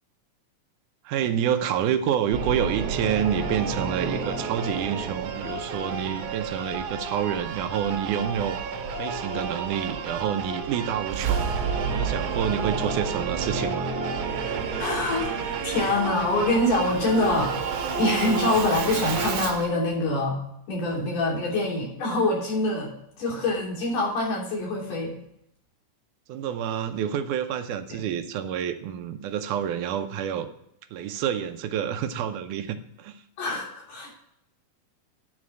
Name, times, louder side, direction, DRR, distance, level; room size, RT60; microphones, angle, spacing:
voice 1, 1.0-8.6 8.9-11.5 11.9-13.9 26.3-30.5 30.9-33.2, right 9 dB, 85° right, 9 dB, 2.2 m, -28 dB
Singing / Musical instrument, 2.3-19.7, right 5 dB, 70° right, 1.8 m, -30 dB
voice 2, 14.8-17.6 18.0-20.4 20.7-22.9 23.2-25.1 27.9-28.0 33.4-34.1, left 2 dB, 90° left, -5 dB, 4.8 m, -25 dB
9.7 x 4.1 x 6.2 m, 0.76 s
omnidirectional pair, 3.6 m